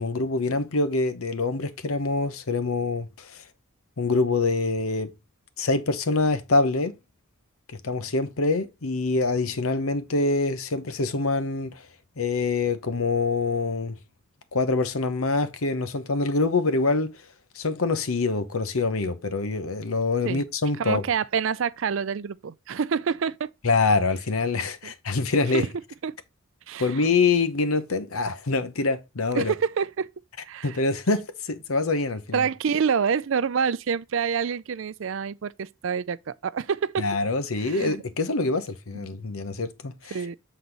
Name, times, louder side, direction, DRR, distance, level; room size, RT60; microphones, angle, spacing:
voice 1, 0.0-3.4 4.0-5.1 5.6-6.9 7.8-11.8 12.2-14.0 14.5-17.1 17.6-21.0 23.6-25.7 26.8-29.5 30.6-32.5 37.0-40.1, left 3 dB, 90° left, 0.9 m, -25 dB
voice 2, 20.8-23.5 24.8-24.9 25.5-25.7 26.0-26.1 26.7-27.1 29.3-30.1 30.4-30.8 32.3-37.1 37.6-38.0 38.9-39.0 40.1-40.4, right 6 dB, 65° right, 0.4 m, -27 dB
7.8 x 4.1 x 4.0 m
head